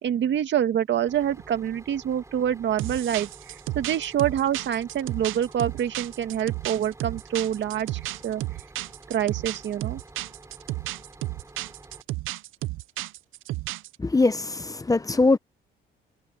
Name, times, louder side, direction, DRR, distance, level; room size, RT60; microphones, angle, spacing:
voice 1, 0.0-3.3 3.8-8.4 9.1-10.0, right 10 dB, 65° right, 1.9 m, -26 dB
Bus, 1.1-12.0, right 2 dB, 15° right, 4.4 m, -49 dB
sound 1, 2.8-14.0, right 18 dB, 85° right, 0.5 m, -33 dB
voice 2, 14.0-15.4, left 3 dB, 15° left, 0.9 m, -22 dB
cardioid pair, 90°, 20 cm